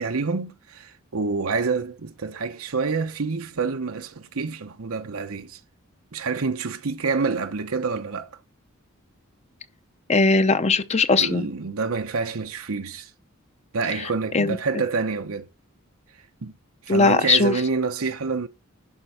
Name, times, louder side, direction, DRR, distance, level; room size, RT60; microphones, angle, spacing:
voice 1, 0.0-5.6 6.1-8.3 11.2-13.1 13.7-15.5 16.4-16.5 16.8-18.5, right 4 dB, 90° right, 0.9 m, -27 dB
voice 2, 10.1-11.5 14.3-14.6 16.9-17.6, left 3 dB, 30° left, 0.7 m, -19 dB
11.5 x 4.5 x 6.4 m
head